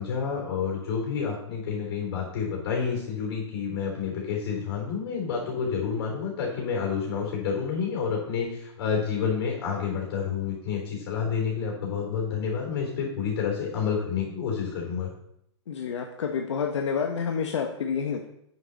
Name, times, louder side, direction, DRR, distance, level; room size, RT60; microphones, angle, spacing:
voice 1, 0.0-15.1, left 6 dB, 60° left, -1 dB, 3.7 m, -29 dB
voice 2, 15.7-18.3, left 6 dB, 85° left, 3 dB, 1.1 m, -29 dB
8.9 x 6.3 x 4.1 m, 0.75 s
hypercardioid pair, 135°, 15 cm